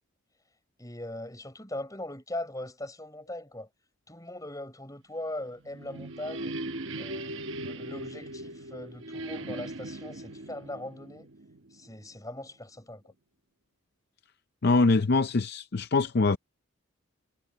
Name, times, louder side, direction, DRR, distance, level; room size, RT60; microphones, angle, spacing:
voice 1, 0.8-3.7 4.1-6.6 7.0-11.3 11.7-13.0, left 1 dB, 15° left, 6.3 m, -40 dB
sound 1, 5.4-12.1, right 1 dB, 65° right, 1.1 m, -39 dB
voice 2, 14.6-16.4, left 3 dB, 50° left, 0.5 m, -23 dB
head